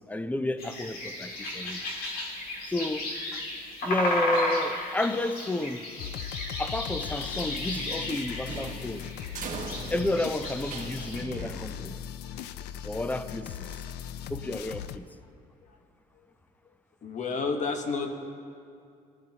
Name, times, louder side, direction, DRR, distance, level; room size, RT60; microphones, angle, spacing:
voice 1, 0.1-1.8 2.7-3.4 3.8-5.9 6.6-9.0 9.9-11.9 12.8-13.7 14.3-15.0, left 1 dB, 10° left, 0.5 m, -31 dB
sound 1, 0.6-11.2, left 1 dB, 65° left, 2.6 m, -34 dB
sound 2, 6.0-15.0, left 9 dB, 85° left, 0.5 m, -39 dB
sound 3, 7.7-12.2, right 5 dB, 50° right, 1.4 m, -41 dB
voice 2, 17.0-18.1, left 4 dB, 45° left, 1.3 m, -30 dB
19.5 x 12.0 x 2.9 m
cardioid pair, 110°, 17 cm